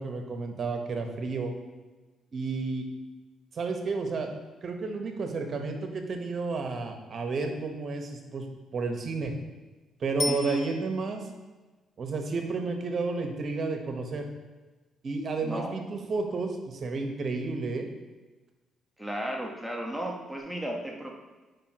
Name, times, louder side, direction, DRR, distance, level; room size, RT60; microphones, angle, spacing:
voice 1, 0.0-1.5 2.3-2.8 3.5-4.3 4.6-8.5 8.7-9.3 10.0-11.2 12.0-14.3 15.0-17.9, right 3 dB, 50° right, 4 dB, 1.1 m, -31 dB
Bicycle bell, 10.2-11.3 20.4-20.5, left 4 dB, 40° left, 0.7 m, -35 dB
voice 2, 10.3-10.6 15.4-15.9 19.0-21.1, right 1 dB, ahead, -1 dB, 1.2 m, -34 dB
9.1 x 5.3 x 3.0 m, 1.2 s
cardioid pair, 90°, 0 cm